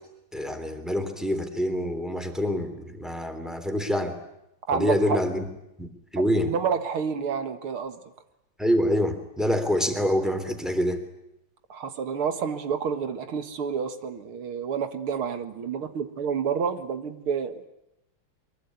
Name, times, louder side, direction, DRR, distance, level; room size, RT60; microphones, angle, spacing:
voice 1, 0.3-4.1 4.7-5.4 5.8-5.9 6.1-6.5 8.6-11.0, equal, ahead, 6 dB, 3.2 m, -26 dB
voice 2, 4.7-5.2 6.2-8.0 11.7-17.7, right 6 dB, 80° right, 8 dB, 2.6 m, -29 dB
23.5 x 22.5 x 9.6 m, 0.85 s
omnidirectional pair, 2.4 m